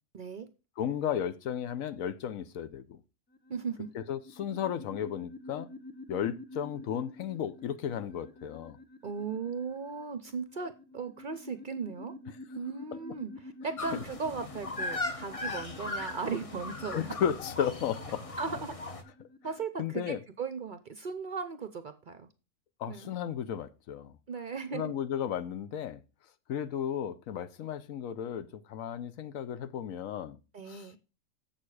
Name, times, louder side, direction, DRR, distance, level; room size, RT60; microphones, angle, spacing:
voice 1, 0.1-0.5 3.5-3.9 9.0-12.1 12.5-17.1 18.4-18.7 19.4-22.3 22.9-23.1 24.3-24.9 30.5-31.0, right 5 dB, 50° right, 0.6 m, -37 dB
voice 2, 0.8-3.0 3.9-5.7 6.1-8.8 13.9-14.0 16.9-18.4 19.8-20.2 22.8-24.2 24.7-26.0 26.5-30.4 30.7-31.0, left 9 dB, 80° left, 1.1 m, -34 dB
sound 1, 3.3-19.6, left 2 dB, 15° left, 0.5 m, -49 dB
sound 2, 13.8-19.0, left 2 dB, 30° left, 0.9 m, -38 dB
7.6 x 6.6 x 4.8 m
omnidirectional pair, 1.4 m